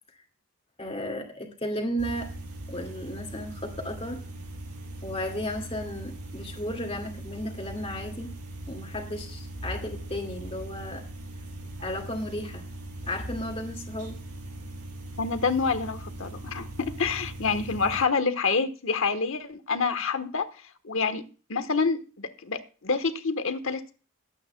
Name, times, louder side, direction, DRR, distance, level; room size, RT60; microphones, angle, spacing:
voice 1, 0.8-2.3 2.7-4.2 5.0-8.3 8.7-11.0 11.8-12.6 13.1-14.2, equal, 25° left, 3 dB, 2.0 m, -34 dB
sound 1, 2.0-18.0, right 1 dB, 90° right, 5.2 m, -40 dB
voice 2, 15.2-20.5 20.8-21.2 21.5-23.9, left 4 dB, 60° left, 10 dB, 1.2 m, -27 dB
21.0 x 9.0 x 2.2 m, 0.35 s
head